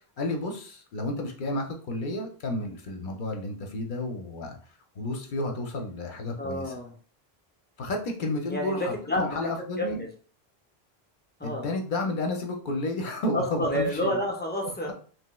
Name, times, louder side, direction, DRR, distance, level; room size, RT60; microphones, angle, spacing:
voice 1, 0.2-4.6 5.0-6.8 7.8-10.0 11.4-14.2, left 2 dB, 55° left, 3 dB, 0.7 m, -31 dB
voice 2, 6.4-6.9 8.5-8.8 9.1-9.5 9.8-10.1 11.4-11.7 13.3-14.9, equal, 15° left, -1 dB, 0.4 m, -29 dB
3.0 x 2.9 x 2.2 m, 0.41 s
omnidirectional pair, 1.1 m